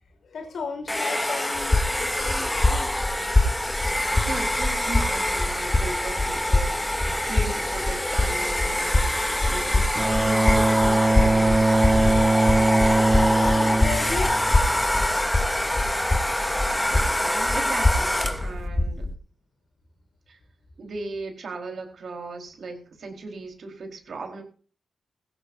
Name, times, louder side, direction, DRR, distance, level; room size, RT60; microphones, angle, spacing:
voice 1, 0.2-2.9 12.6-14.5, left 5 dB, 75° left, 6 dB, 4.9 m, -35 dB
Domestic sounds home sounds, 0.9-18.6, left 1 dB, 10° left, 2.8 m, -26 dB
sound 1, 1.6-19.1, left 2 dB, 30° left, 2.2 m, -26 dB
voice 2, 4.3-11.8 16.7-19.1 20.3-20.4 20.8-24.4, right 3 dB, 70° right, 4 dB, 4.4 m, -37 dB
Bowed string instrument, 10.0-15.0, right 2 dB, 25° right, 0.6 m, -21 dB
18.0 x 16.5 x 2.8 m, 0.40 s
cardioid pair, 50°, 0 cm